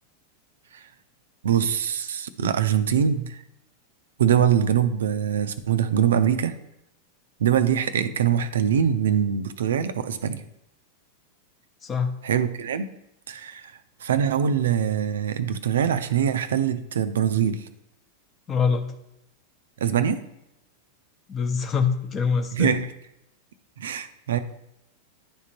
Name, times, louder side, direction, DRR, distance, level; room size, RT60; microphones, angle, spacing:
voice 1, 1.4-3.4 4.2-6.6 7.4-10.4 12.2-12.9 13.3-13.7 14.0-17.7 19.8-20.2 22.5-22.9 23.8-24.4, right 8 dB, 65° right, 11 dB, 0.5 m, -23 dB
voice 2, 11.8-12.1 18.5-18.9 21.3-22.8, left 5 dB, 25° left, 6 dB, 0.9 m, -24 dB
10.5 x 3.6 x 3.0 m, 0.83 s
figure-of-eight pair, 90°, 0 cm